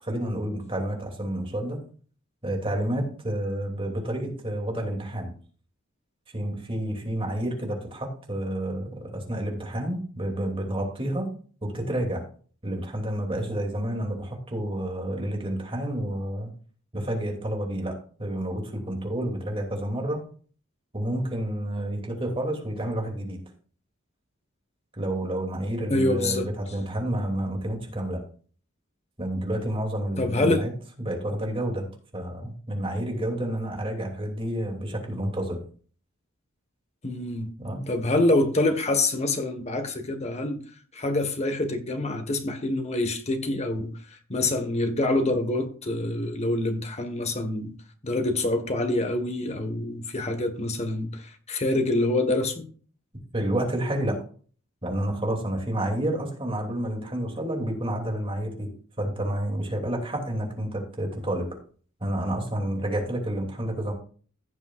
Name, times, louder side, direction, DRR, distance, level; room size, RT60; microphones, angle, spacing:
voice 1, 0.0-1.8 2.4-5.3 6.3-11.3 11.6-12.2 12.6-16.5 16.9-20.2 20.9-23.4 25.0-28.2 29.2-30.7 31.0-31.9 32.1-35.6 37.6-37.9 53.3-54.2 54.8-58.7 59.0-61.5 62.0-63.9, right 1 dB, 25° right, 2.8 m, -29 dB
voice 2, 25.9-26.5 30.2-30.7 37.0-37.5 37.9-40.6 40.9-47.7 48.0-52.7, left 2 dB, 30° left, 1.5 m, -26 dB
16.0 x 7.1 x 2.5 m
head